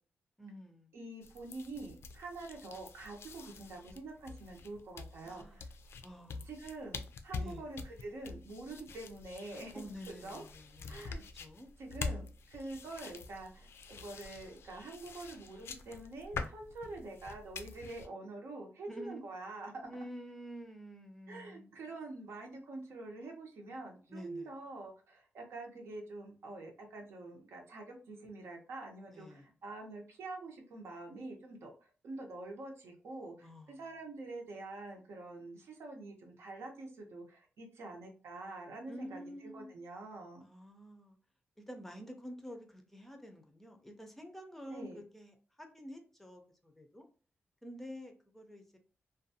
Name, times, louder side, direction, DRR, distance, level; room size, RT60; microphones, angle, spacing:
voice 1, 0.4-1.0 5.2-5.7 6.0-6.5 7.4-7.7 9.7-11.7 18.9-19.3 19.9-21.7 24.1-24.5 29.1-29.5 33.4-33.8 38.9-39.8 40.4-41.2 41.6-47.1 47.6-48.8, equal, 5° left, 0.5 m, -49 dB
voice 2, 0.9-5.7 6.5-9.7 10.1-10.5 10.9-11.2 11.8-13.7 14.0-19.9 21.3-40.5 44.7-45.0, right 2 dB, 80° right, 0.8 m, -46 dB
sound 1, 1.2-18.1, left 4 dB, 70° left, 0.4 m, -46 dB
2.5 x 2.2 x 2.7 m
wide cardioid pair, 125°, 4 cm